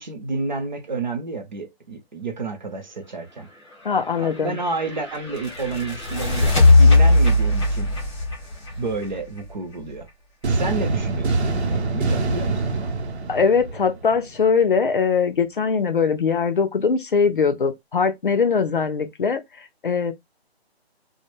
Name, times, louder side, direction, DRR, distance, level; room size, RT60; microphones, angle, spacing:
voice 1, 0.0-3.5 4.2-7.9 8.8-10.1 10.5-13.0, right 3 dB, 45° right, 0.6 m, -30 dB
voice 2, 3.8-4.6 13.3-20.1, left 5 dB, 55° left, 0.5 m, -21 dB
sound 1, 4.0-9.7, left 2 dB, 25° left, 0.9 m, -19 dB
sound 2, 10.4-14.4, right 3 dB, 85° right, 0.7 m, -25 dB
2.1 x 2.1 x 2.9 m
hypercardioid pair, 170°, 32 cm